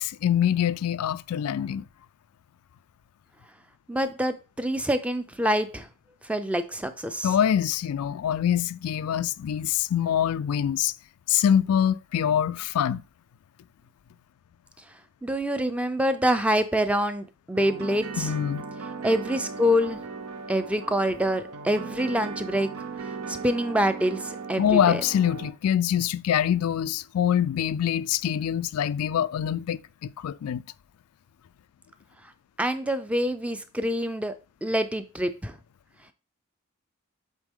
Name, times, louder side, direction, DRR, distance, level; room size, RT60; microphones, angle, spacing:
voice 1, 0.0-1.8 7.2-10.9 11.3-13.0 18.2-18.6 24.6-30.6, left 9 dB, 85° left, 0.3 m, -24 dB
voice 2, 3.9-5.9 6.3-7.3 15.2-18.3 19.0-20.0 20.5-22.7 23.3-25.0 32.6-34.3 34.6-35.5, equal, 5° right, 0.4 m, -26 dB
sound 1, 17.5-25.5, right 4 dB, 75° right, 0.8 m, -37 dB
8.2 x 3.7 x 3.6 m
head